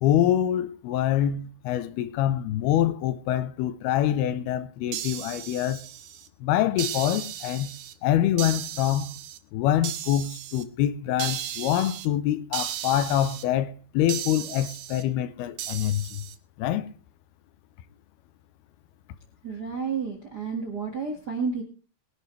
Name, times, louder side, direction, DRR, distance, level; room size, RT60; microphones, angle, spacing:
voice 1, 0.0-5.8 6.4-7.7 8.0-9.1 9.5-16.2 16.6-16.9, left 11 dB, 80° left, 2.7 m, -25 dB
sound 1, 4.9-6.3 6.8-7.9 8.4-9.4 9.8-10.6 11.2-12.1 12.5-13.4 14.1-15.0 15.6-16.4, right 11 dB, 80° right, 1.7 m, -35 dB
voice 2, 19.4-21.6, right 5 dB, 45° right, 1.3 m, -31 dB
21.5 x 11.0 x 3.3 m
omnidirectional pair, 4.7 m